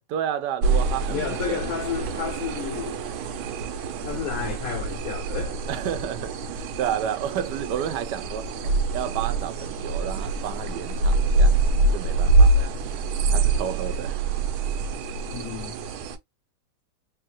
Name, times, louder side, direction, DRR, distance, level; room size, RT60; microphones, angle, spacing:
voice 1, 0.1-1.6 5.7-11.5 11.9-12.7 13.3-14.2, right 9 dB, 70° right, 1.1 m, -31 dB
sound 1, 0.6-16.2, right 3 dB, 85° right, 1.5 m, -25 dB
voice 2, 1.1-3.0 4.0-5.7 15.2-15.7, left 8 dB, 80° left, 0.8 m, -32 dB
3.4 x 3.3 x 2.8 m
omnidirectional pair, 2.2 m